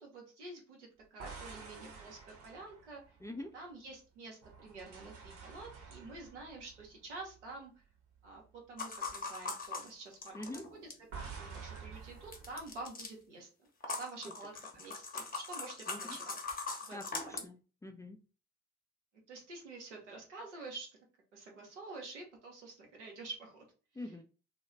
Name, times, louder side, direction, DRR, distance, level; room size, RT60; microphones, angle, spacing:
voice 1, 0.0-3.2 3.5-7.7 8.2-8.4 8.7-10.6 11.1-13.7 14.0-16.4 16.8-17.4 19.3-20.9 21.3-23.6 24.0-24.1, right 3 dB, 85° right, 0 dB, 0.7 m, -48 dB
sound 1, 1.0-3.9 4.4-7.8 8.1-8.4 11.1-12.7, right 5 dB, 55° right, 0.9 m, -50 dB
sound 2, 8.8-11.1 12.3-13.1 13.8-17.4, left 4 dB, 25° left, 0.7 m, -41 dB
voice 2, 16.9-18.2 24.0-24.2, left 1 dB, 10° left, 5 dB, 0.3 m, -44 dB
2.2 x 2.1 x 3.1 m, 0.34 s
figure-of-eight pair, 45°, 34 cm